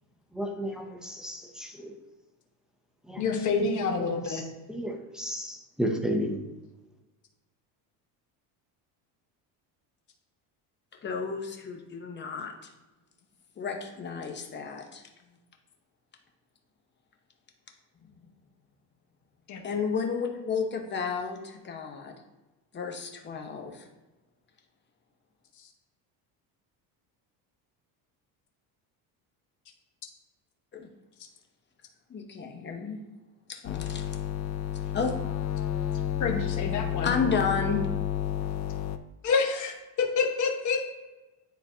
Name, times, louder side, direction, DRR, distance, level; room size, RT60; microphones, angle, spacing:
voice 1, 0.3-2.0 3.0-6.4, equal, ahead, 1 dB, 0.5 m, -34 dB
voice 2, 3.2-4.4 19.5-19.6 36.1-37.1 39.2-40.8, left 5 dB, 45° left, 2 dB, 1.2 m, -28 dB
voice 3, 11.0-12.5 13.6-15.0 19.6-22.1 22.7-23.9 30.7-30.9 32.1-33.0 33.5-34.1 34.9-35.2 37.0-37.9, left 5 dB, 25° left, 3 dB, 0.8 m, -32 dB
sound 1, 33.6-39.0, left 10 dB, 85° left, 0.6 m, -31 dB
9.7 x 3.9 x 2.7 m, 1.1 s
cardioid pair, 145°, 43 cm